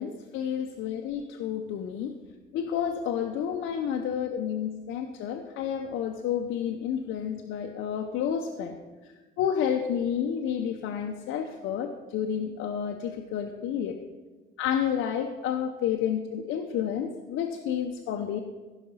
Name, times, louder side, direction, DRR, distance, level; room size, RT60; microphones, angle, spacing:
voice 1, 0.0-2.1 2.5-8.8 9.0-14.0 14.6-18.4, left 8 dB, 90° left, 4 dB, 0.7 m, -30 dB
15.0 x 5.9 x 5.5 m, 1.3 s
cardioid pair, 90°, 20 cm